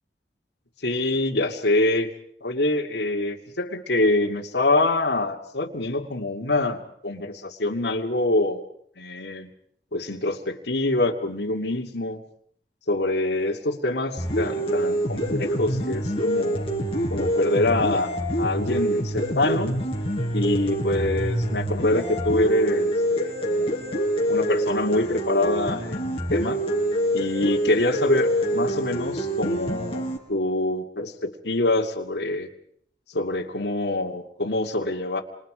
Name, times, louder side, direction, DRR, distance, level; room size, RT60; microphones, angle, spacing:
voice 1, 0.8-2.1 2.4-8.6 9.0-9.5 9.9-12.2 12.9-16.7 17.1-19.8 20.3-23.8 24.3-26.6 27.1-32.5 33.1-35.2, left 2 dB, 80° left, 1 dB, 2.5 m, -25 dB
sound 1, 14.2-30.2, equal, 30° left, 6.0 m, -26 dB
27.5 x 27.5 x 5.1 m, 0.65 s
head